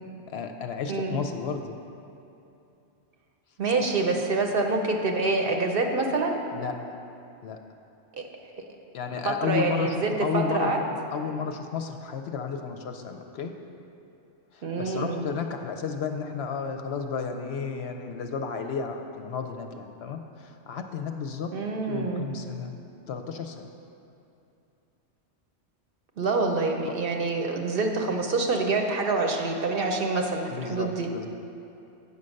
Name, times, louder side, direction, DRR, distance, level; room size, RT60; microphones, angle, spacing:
voice 1, 0.3-1.8 3.9-4.1 6.5-6.7 7.4-7.6 8.9-10.7 11.1-13.5 14.5-21.5 21.9-22.7 23.1-23.7 30.5-31.3, left 6 dB, 65° left, 6 dB, 0.7 m, -32 dB
voice 2, 3.6-6.4 8.1-8.2 8.6-8.7 9.2-10.8 14.6-15.2 21.5-22.3 26.2-31.1, right 3 dB, 55° right, 2 dB, 0.8 m, -26 dB
8.6 x 5.4 x 6.3 m, 2.8 s
omnidirectional pair, 1.3 m